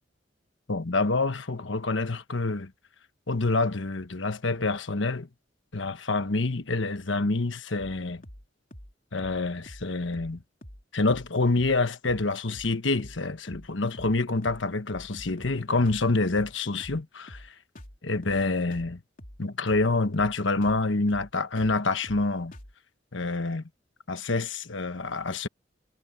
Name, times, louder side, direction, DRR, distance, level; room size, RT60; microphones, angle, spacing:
voice 1, 0.7-2.7 3.3-5.3 5.7-8.2 9.1-10.4 10.9-17.4 18.0-19.0 19.4-22.5 23.1-23.6 24.1-25.5, left 3 dB, 75° left, 1.3 m, -27 dB
sound 1, 7.8-8.0 8.2-8.4 8.7-8.9 9.2-9.4 9.7-9.9 10.1-10.4 10.6-10.8 11.1-11.3 11.6-11.8 12.0-12.3 12.5-12.7 13.0-13.2 13.5-13.7 13.9-14.2 14.4-14.6 14.9-15.6 15.8-16.1 16.3-16.5 16.8-17.0 17.3-17.5 17.8-18.0 18.2-18.4 18.7-18.9 19.2-19.4 19.7-19.9 20.1-20.4 20.6-20.8 21.1-21.3 21.6-21.8 22.0-22.3 22.5-22.7, equal, 45° left, 3.4 m, -46 dB
head